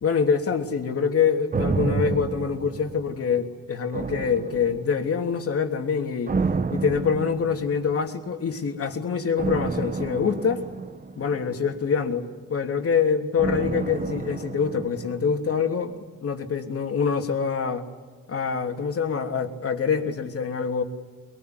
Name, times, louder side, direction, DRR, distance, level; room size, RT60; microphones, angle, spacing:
voice 1, 0.0-6.4 6.7-10.6 11.2-17.8 18.3-20.8, left 6 dB, 50° left, 4 dB, 3.1 m, -25 dB
sound 1, 1.5-3.4 3.9-5.2 6.3-8.0 9.4-11.8 13.4-15.5 15.8-15.9, right 4 dB, 30° right, 1.1 m, -30 dB
23.5 x 22.0 x 9.6 m, 1.4 s
cardioid pair, 90°, 30 cm